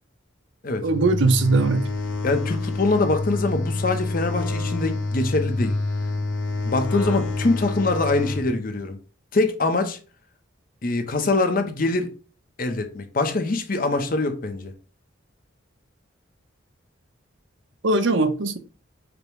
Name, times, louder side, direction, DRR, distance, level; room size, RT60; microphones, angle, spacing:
sound 1, 0.8-8.5, left 2 dB, 70° left, 0.9 m, -27 dB
voice 1, 0.8-1.8 17.8-18.6, right 3 dB, 70° right, 0.6 m, -20 dB
voice 2, 2.2-5.7 6.6-9.0 9.3-10.0 10.8-12.1 12.6-14.7, left 3 dB, 45° left, 0.6 m, -23 dB
5.1 x 2.1 x 4.6 m
head